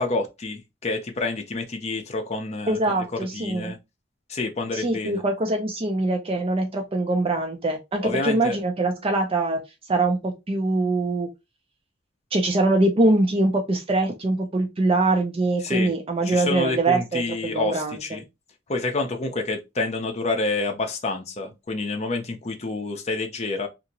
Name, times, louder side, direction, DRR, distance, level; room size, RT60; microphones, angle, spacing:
voice 1, 0.0-2.8 3.3-3.8 4.3-5.2 8.0-8.6 15.6-15.9 16.2-18.2 18.7-23.7, left 3 dB, 35° left, 0.6 m, -28 dB
voice 2, 2.7-3.7 4.7-9.6 9.9-11.3 12.3-18.0, right 2 dB, 30° right, 0.5 m, -23 dB
2.8 x 2.5 x 2.8 m
head